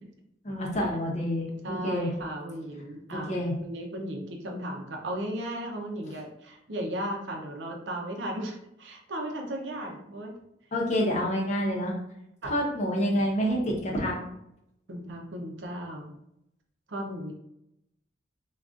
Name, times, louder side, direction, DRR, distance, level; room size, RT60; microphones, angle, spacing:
voice 1, 0.4-2.1 3.1-3.5 10.7-12.0 12.4-14.2, equal, 40° left, -2 dB, 0.7 m, -28 dB
voice 2, 1.6-3.3 3.6-10.3 11.0-11.3 12.4-12.5 14.9-16.1 16.9-17.3, right 1 dB, 80° right, 2 dB, 0.6 m, -36 dB
3.7 x 2.3 x 2.4 m, 0.81 s
head